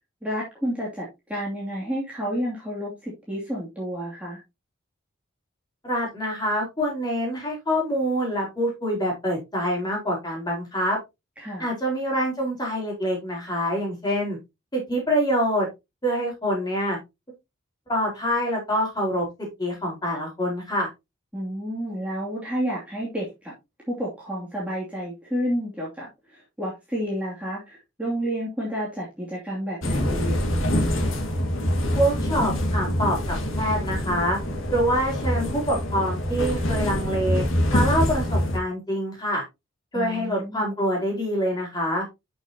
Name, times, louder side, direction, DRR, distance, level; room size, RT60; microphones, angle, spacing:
voice 1, 0.2-4.4 11.4-11.7 21.3-23.5 23.9-30.5 39.9-40.7, equal, 5° right, -6 dB, 2.6 m, -30 dB
voice 2, 5.8-11.0 11.6-14.4 14.7-15.7 16.0-17.0 17.9-19.2 19.6-20.9 31.9-34.4 34.7-37.4 37.7-39.4 39.9-42.0, equal, 20° left, -1 dB, 4.6 m, -25 dB
sound 1, 29.8-38.6, equal, 75° left, 2.1 m, -25 dB
11.0 x 6.3 x 2.9 m, 0.23 s
head